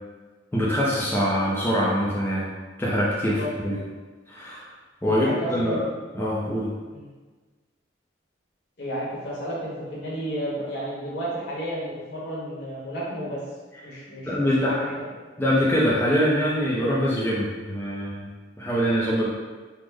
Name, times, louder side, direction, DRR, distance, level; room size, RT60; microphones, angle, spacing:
voice 1, 0.5-2.5 2.8-3.8 4.3-4.7 5.0-5.8 6.1-6.7 14.2-14.8 15.4-18.3 18.6-19.3, equal, 10° left, -6 dB, 0.4 m, -24 dB
voice 2, 3.3-3.7 5.1-5.9 6.9-7.1 8.8-13.4 13.8-15.1, equal, 65° left, -6 dB, 1.0 m, -32 dB
3.4 x 2.0 x 3.3 m, 1.4 s
head